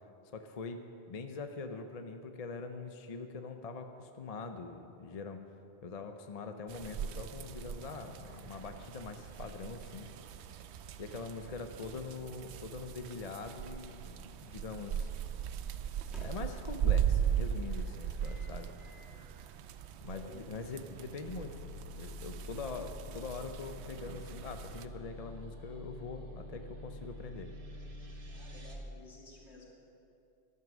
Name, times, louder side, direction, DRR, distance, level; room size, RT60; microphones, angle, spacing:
voice 1, 0.3-5.4 5.8-10.1 11.0-15.1 16.2-18.7 20.0-21.6 22.0-27.5, left 4 dB, 40° left, 6 dB, 0.7 m, -43 dB
sound 1, 6.7-24.9, right 9 dB, 80° right, 0.8 m, -38 dB
sound 2, 11.1-14.7 15.8-17.1 18.2-19.2 19.7-19.9 20.8-22.4, equal, ahead, 1.5 m, -62 dB
voice 2, 20.1-20.5 28.3-29.7, left 3 dB, 75° left, -3 dB, 2.7 m, -54 dB
sound 3, 21.3-28.8, left 1 dB, 55° right, 1.5 m, -47 dB
12.5 x 11.0 x 6.2 m, 2.7 s
omnidirectional pair, 1.1 m